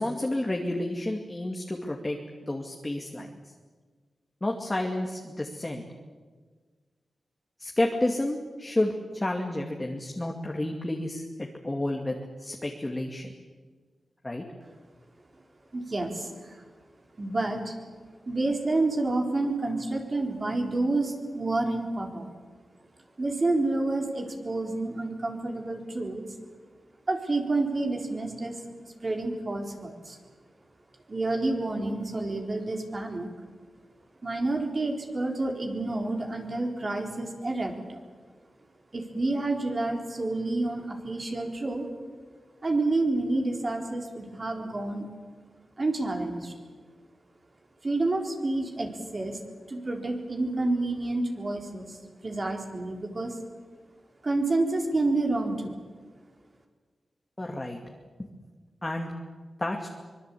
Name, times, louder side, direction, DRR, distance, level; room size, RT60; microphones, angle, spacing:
voice 1, 0.0-2.2 2.5-3.3 4.4-5.8 7.6-12.1 12.4-13.3 14.2-14.4 57.4-57.8 58.8-59.1 59.6-59.9, left 1 dB, 20° left, 1 dB, 2.4 m, -30 dB
voice 2, 15.7-16.6 17.2-17.8 18.3-22.3 23.2-26.2 27.1-30.2 31.1-33.3 34.2-38.0 38.9-41.9 42.6-45.1 45.8-46.5 47.8-49.4 49.7-52.0 52.2-53.4 54.2-55.8, right 2 dB, 35° right, 2 dB, 4.0 m, -29 dB
24.5 x 22.0 x 8.5 m, 1.5 s
wide cardioid pair, 105°, 0 cm